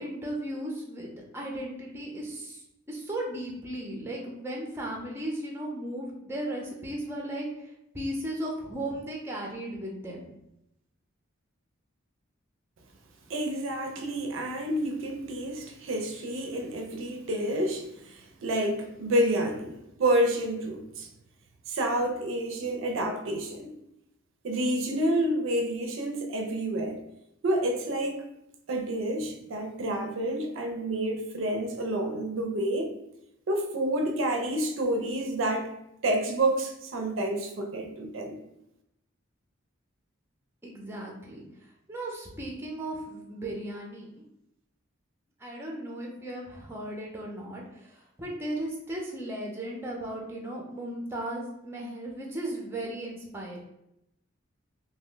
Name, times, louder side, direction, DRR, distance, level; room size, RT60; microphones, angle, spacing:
voice 1, 0.0-2.6 2.9-7.5 7.9-10.3 40.6-41.4 41.9-44.2 45.4-53.6, right 1 dB, 10° right, 0.5 m, -36 dB
voice 2, 13.3-21.1 21.7-23.7 24.4-27.0 27.4-28.2 28.7-32.9 33.5-35.7 36.0-38.4, right 1 dB, 65° right, 0.4 m, -29 dB
2.7 x 2.1 x 3.7 m
head